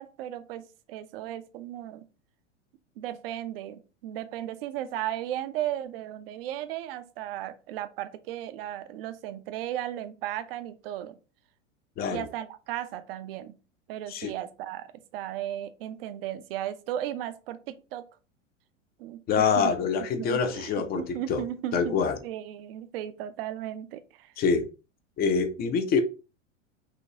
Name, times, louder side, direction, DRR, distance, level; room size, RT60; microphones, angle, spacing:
voice 1, 0.0-2.1 3.0-11.2 12.1-13.5 13.9-14.9 15.1-18.1 19.0-19.7 20.2-24.3, right 12 dB, 50° right, 0.6 m, -35 dB
voice 2, 19.3-21.4 21.7-22.2 24.4-24.7 25.2-26.0, left 5 dB, 25° left, 0.6 m, -25 dB
5.7 x 3.0 x 2.8 m
figure-of-eight pair, 90°, 39 cm